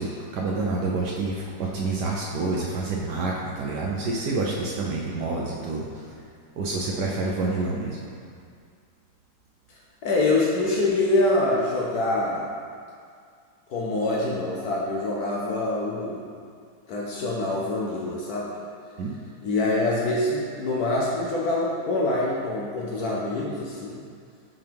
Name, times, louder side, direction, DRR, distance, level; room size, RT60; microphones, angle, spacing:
voice 1, 0.0-6.1 6.6-8.0 19.0-19.1, right 3 dB, 70° right, -3 dB, 1.1 m, -28 dB
voice 2, 9.7-12.5 13.7-16.3 16.9-18.5 19.4-24.0, left 2 dB, 65° left, -3 dB, 1.0 m, -25 dB
5.8 x 5.3 x 3.4 m, 2.2 s
omnidirectional pair, 2.1 m